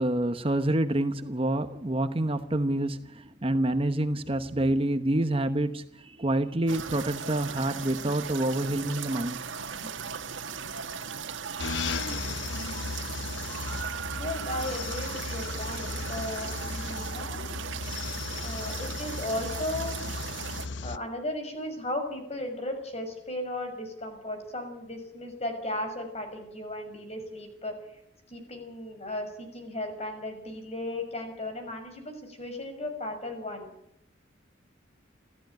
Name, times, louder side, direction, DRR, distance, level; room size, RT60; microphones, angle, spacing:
voice 1, 0.0-9.4 9.8-9.9, right 1 dB, 30° right, 9 dB, 1.0 m, -27 dB
sound 1, 6.7-20.7, right 6 dB, 85° right, 1.7 m, -37 dB
sound 2, 11.6-21.0, left 4 dB, 70° left, 0.8 m, -36 dB
voice 2, 14.2-18.1 18.4-19.9 20.8-27.7 28.3-33.7, left 1 dB, 35° left, 5 dB, 6.4 m, -36 dB
29.0 x 14.5 x 9.3 m, 0.78 s
head